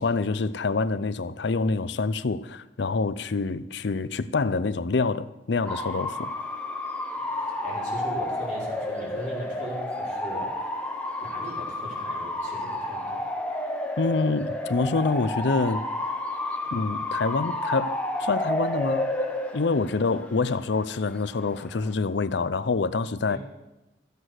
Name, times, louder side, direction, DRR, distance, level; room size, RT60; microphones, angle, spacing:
voice 1, 0.0-6.3 14.0-15.9 16.7-19.1 19.5-23.4, left 3 dB, 75° left, 0.6 m, -26 dB
Bark / Motor vehicle (road) / Siren, 5.6-21.9, left 1 dB, 5° left, 1.0 m, -31 dB
voice 2, 7.3-10.7 11.2-13.3 23.3-23.4, right 1 dB, 45° right, 4.3 m, -39 dB
15.0 x 8.1 x 6.3 m
head